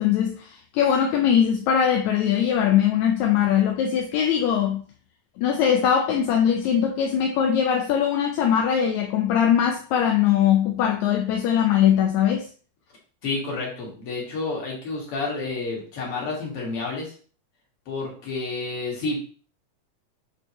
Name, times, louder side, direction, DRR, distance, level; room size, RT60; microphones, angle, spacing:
voice 1, 0.0-4.8 5.4-12.5, left 9 dB, 80° left, 2.0 m, -21 dB
voice 2, 13.2-17.1 17.9-19.2, left 3 dB, 50° left, 3.0 m, -30 dB
8.4 x 4.4 x 3.2 m
omnidirectional pair, 3.3 m